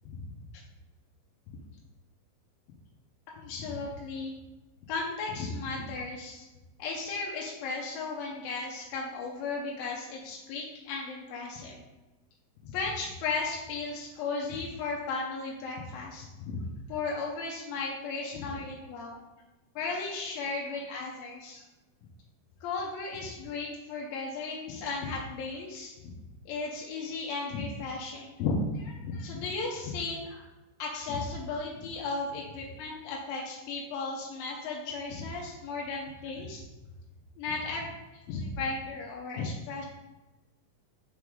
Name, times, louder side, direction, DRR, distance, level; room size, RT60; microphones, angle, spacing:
voice 1, 3.4-4.3 4.9-6.5 6.8-11.8 12.6-16.6 16.9-19.2 19.8-21.6 22.6-25.9 26.5-30.5 30.8-36.6 37.4-37.9 38.3-39.9, left 3 dB, 80° left, -3 dB, 2.5 m, -35 dB
5.9 x 4.7 x 3.7 m, 1.1 s
omnidirectional pair, 4.1 m